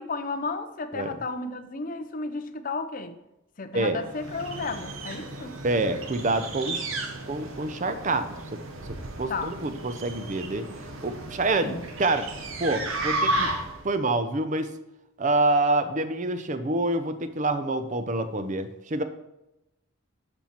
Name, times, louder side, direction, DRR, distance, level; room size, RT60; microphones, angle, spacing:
voice 1, 0.0-3.2 3.6-5.6 9.3-9.5 11.6-11.8, left 3 dB, 40° left, 0.6 m, -33 dB
sound 1, 4.0-13.9, right 2 dB, 70° right, 1.1 m, -33 dB
voice 2, 5.6-6.9 7.3-8.6 8.8-12.3 12.6-13.5 13.8-14.7 15.2-19.0, right 2 dB, 35° right, 0.5 m, -27 dB
13.0 x 4.4 x 4.4 m
head